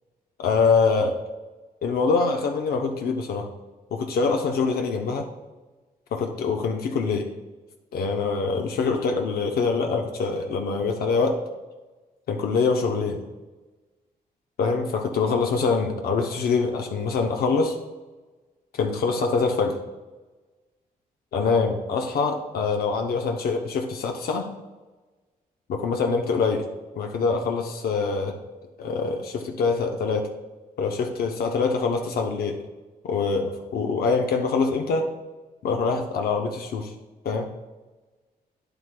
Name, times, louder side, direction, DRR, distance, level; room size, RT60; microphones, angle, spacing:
voice 1, 0.4-1.2 1.8-3.5 3.9-5.3 6.1-7.3 7.9-11.4 12.3-13.2 14.6-17.8 18.7-19.8 21.3-24.5 25.7-26.6 26.9-28.4 28.8-30.3 30.8-32.6 33.0-35.1 35.6-36.9 37.2-37.5, left 4 dB, 80° left, 3 dB, 0.7 m, -24 dB
10.0 x 7.9 x 2.2 m, 1.2 s
wide cardioid pair, 140°, 16 cm